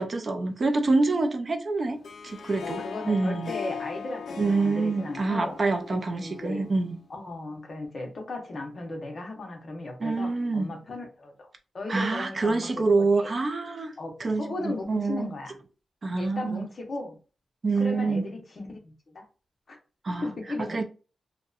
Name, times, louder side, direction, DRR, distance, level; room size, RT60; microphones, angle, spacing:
voice 1, 0.0-3.5 4.4-7.0 10.0-10.7 11.9-13.9 14.2-15.3 16.0-16.6 17.6-18.2 20.0-20.3 20.7-20.8, right 3 dB, 40° right, 0.4 m, -26 dB
Harp, 1.8-7.1, left 6 dB, 65° left, 0.3 m, -39 dB
voice 2, 2.6-5.6 5.9-6.7 7.1-11.5 11.7-13.3 14.0-15.6 16.2-17.2 17.8-19.3 19.7-19.8 20.2-20.8, left 2 dB, 45° left, 0.7 m, -36 dB
2.7 x 2.1 x 2.3 m
wide cardioid pair, 160°, 0 cm